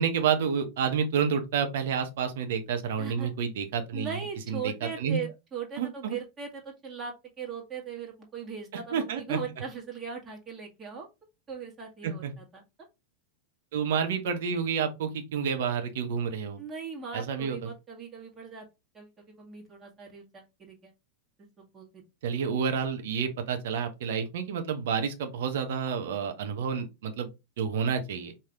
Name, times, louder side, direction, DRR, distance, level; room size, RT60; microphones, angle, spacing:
voice 1, 0.0-4.2 4.5-4.7 5.0-5.2 5.8-6.1 8.9-9.4 12.0-12.3 13.7-16.6 17.1-17.6 22.2-27.3 27.6-28.3, right 7 dB, 55° right, 0.8 m, -29 dB
voice 2, 3.0-3.3 3.9-11.1 11.5-12.6 16.6-18.7 18.9-20.9 21.4-22.0, right 6 dB, 20° right, 1.7 m, -39 dB
4.8 x 2.9 x 3.7 m
figure-of-eight pair, 90°, 0 cm